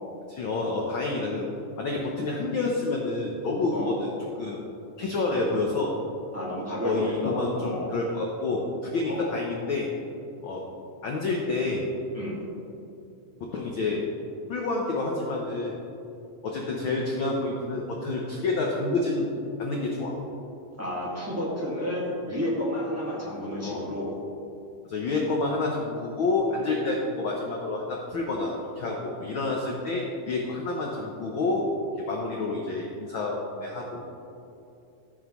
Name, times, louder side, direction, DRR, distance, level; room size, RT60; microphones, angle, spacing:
voice 1, 0.3-1.5 1.8-4.1 4.4-4.6 5.0-5.9 6.8-9.9 10.4-10.6 11.0-11.8 13.4-14.0 14.5-15.8 16.4-19.3 19.6-20.2 23.6-23.9 24.9-31.7 32.0-34.0, left 3 dB, 85° left, -1 dB, 1.1 m, -28 dB
voice 2, 6.3-7.9 9.0-9.3 12.1-12.4 20.8-24.1, left 1 dB, 10° right, -6 dB, 1.0 m, -31 dB
14.5 x 7.2 x 3.1 m, 2.7 s
omnidirectional pair, 3.5 m